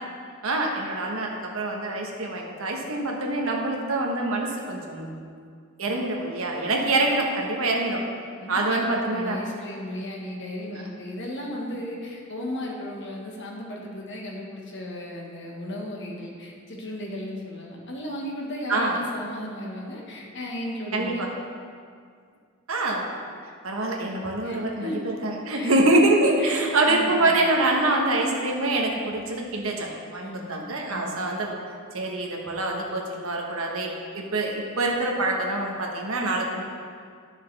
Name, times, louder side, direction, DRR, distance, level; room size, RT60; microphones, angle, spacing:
voice 1, 0.4-5.1 5.8-8.0 8.5-9.4 18.7-19.0 20.9-21.3 22.7-23.1 23.6-31.6 31.9-36.6, right 2 dB, 75° right, 0 dB, 1.2 m, -25 dB
voice 2, 8.4-21.2 24.4-25.1 25.5-25.7 26.4-27.4 30.2-30.5 30.9-31.2, left 1 dB, 55° left, -1 dB, 1.4 m, -35 dB
11.0 x 6.3 x 3.3 m, 2.1 s
head